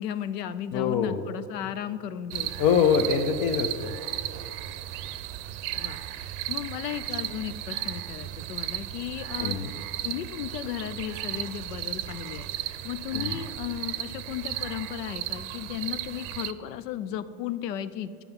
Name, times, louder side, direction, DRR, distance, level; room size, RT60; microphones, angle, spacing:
voice 1, 0.0-2.5 5.8-9.6 10.0-18.2, left 10 dB, 85° left, 14 dB, 0.6 m, -35 dB
voice 2, 0.7-1.2 2.6-3.9 9.4-9.7 13.1-13.4, left 6 dB, 45° left, 5 dB, 0.6 m, -24 dB
sound 1, 2.3-16.5, right 13 dB, 60° right, 0.6 m, -35 dB
9.9 x 5.9 x 5.3 m, 2.6 s
hypercardioid pair, 100°, 47 cm